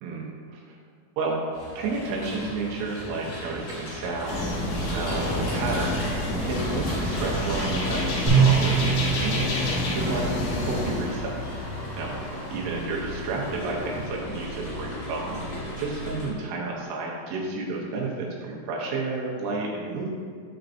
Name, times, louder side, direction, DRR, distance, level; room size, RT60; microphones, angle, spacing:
voice 1, 0.0-0.6 1.2-1.4 1.8-8.8 9.2-11.4 11.9-15.3 15.8-20.1, right 3 dB, 80° right, -3 dB, 3.4 m, -31 dB
sound 1, 1.5-16.3, equal, 60° left, 2.0 m, -36 dB
sound 2, 4.3-11.2, left 1 dB, 75° left, 2.2 m, -28 dB
sound 3, 8.3-11.5, right 6 dB, 65° right, 1.5 m, -25 dB
12.5 x 4.5 x 2.6 m, 2.1 s
omnidirectional pair, 5.9 m